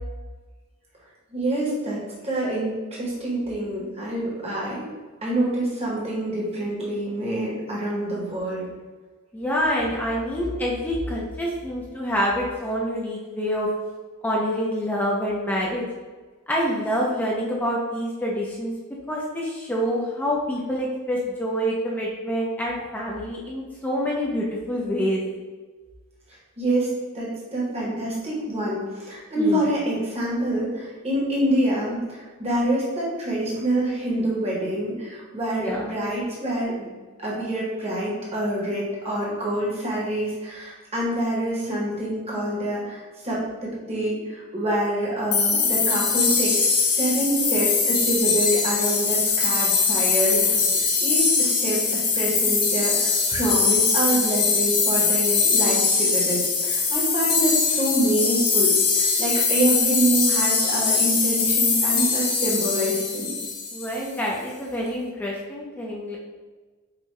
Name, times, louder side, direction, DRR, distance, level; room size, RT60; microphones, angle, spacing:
voice 1, 1.3-4.9 5.2-8.7 26.6-36.9 37.2-46.6 46.9-63.3, right 1 dB, 30° right, -6 dB, 1.0 m, -26 dB
voice 2, 9.3-13.7 14.2-15.8 16.5-18.7 19.1-25.2 29.3-29.7 35.6-35.9 50.3-50.8 63.7-66.2, equal, 10° left, -4 dB, 0.5 m, -27 dB
sound 1, 45.3-64.0, left 5 dB, 90° left, 0.9 m, -22 dB
5.2 x 2.2 x 3.1 m, 1.3 s
head